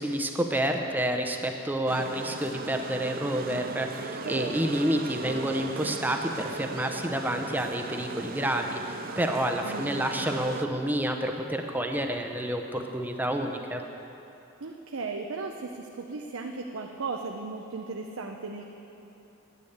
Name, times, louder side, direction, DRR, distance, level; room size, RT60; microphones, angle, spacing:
voice 1, 0.0-13.8, right 1 dB, 10° right, 4 dB, 0.7 m, -29 dB
sound 1, 1.9-10.6, right 4 dB, 45° right, 0.5 m, -38 dB
voice 2, 4.2-4.8 9.6-10.1 14.6-18.7, right 4 dB, 85° right, 2 dB, 0.7 m, -36 dB
9.9 x 9.8 x 8.1 m, 2.9 s
head